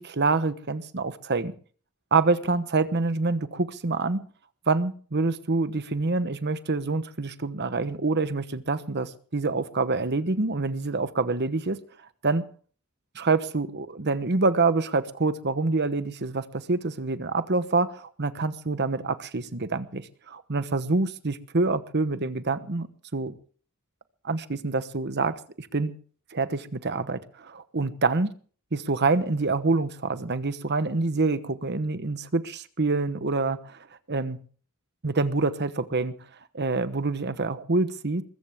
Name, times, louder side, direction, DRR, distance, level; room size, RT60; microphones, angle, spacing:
voice 1, 0.0-1.5 2.1-4.3 4.7-11.8 12.2-12.5 13.1-22.9 23.1-23.3 24.2-25.9 26.3-28.3 28.7-33.8 34.1-34.4 35.0-36.1 36.5-38.2, right 3 dB, 50° right, 12 dB, 1.1 m, -26 dB
21.0 x 15.0 x 3.6 m, 0.43 s
head